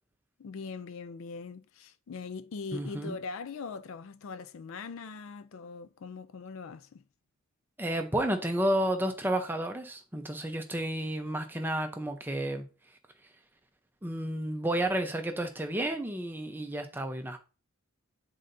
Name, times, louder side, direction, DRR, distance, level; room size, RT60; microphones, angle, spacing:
voice 1, 0.4-7.0, left 4 dB, 70° left, 0.4 m, -41 dB
voice 2, 2.7-3.2 7.8-12.7 14.0-17.4, right 1 dB, 10° right, 0.6 m, -31 dB
9.5 x 3.9 x 2.6 m
head